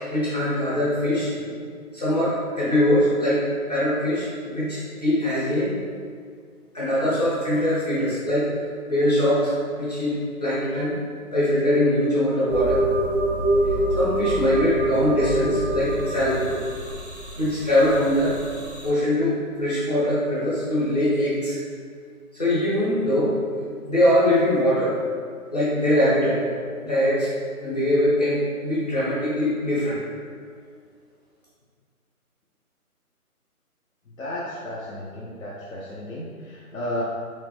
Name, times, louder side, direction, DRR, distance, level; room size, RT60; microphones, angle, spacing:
voice 1, 0.0-1.3 1.9-5.7 6.7-8.5 8.9-10.9 11.3-12.8 14.0-16.5 17.4-18.4 18.8-21.6 22.3-23.4 23.9-25.0 25.5-26.4 26.8-27.3 27.6-30.0, left 1 dB, 25° left, -10 dB, 0.8 m, -22 dB
sound 1, 12.5-18.9, right 1 dB, 50° right, 0.5 m, -25 dB
voice 2, 34.1-37.0, left 1 dB, 65° left, -6 dB, 0.7 m, -34 dB
3.1 x 3.1 x 3.2 m, 2.1 s
hypercardioid pair, 175°, 45 cm